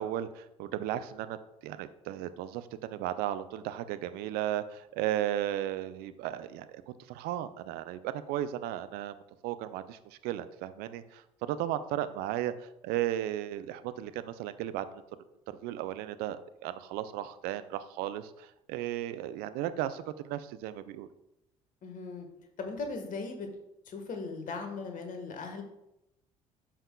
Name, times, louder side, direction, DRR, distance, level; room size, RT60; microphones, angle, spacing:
voice 1, 0.0-1.4 1.6-6.8 7.1-9.2 9.4-14.9 15.5-21.1, right 12 dB, 55° right, 12 dB, 0.5 m, -35 dB
voice 2, 21.8-22.3 22.6-23.5 23.8-25.6, left 4 dB, 45° left, 5 dB, 1.5 m, -38 dB
13.0 x 5.6 x 2.3 m, 0.87 s
figure-of-eight pair, 55°, 19 cm